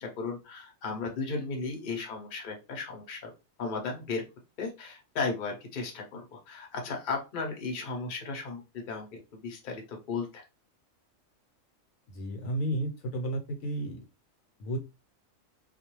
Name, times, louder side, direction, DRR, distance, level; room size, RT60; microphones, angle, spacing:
voice 1, 0.0-3.3 3.6-4.2 4.6-10.5, left 4 dB, 45° left, 1 dB, 0.8 m, -35 dB
voice 2, 12.1-14.0 14.6-14.8, right 1 dB, 75° left, 2 dB, 1.1 m, -32 dB
2.4 x 2.2 x 3.0 m, 0.27 s
omnidirectional pair, 1.4 m